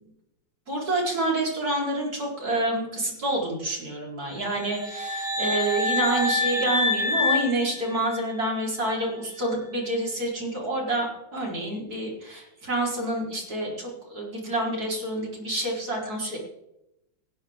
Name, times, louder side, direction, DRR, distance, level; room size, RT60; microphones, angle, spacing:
voice 1, 0.7-16.4, right 1 dB, 50° right, -2 dB, 4.8 m, -28 dB
sound 1, 4.4-8.4, left 2 dB, 10° right, 5.7 m, -27 dB
18.0 x 15.5 x 3.7 m, 0.87 s
omnidirectional pair, 2.1 m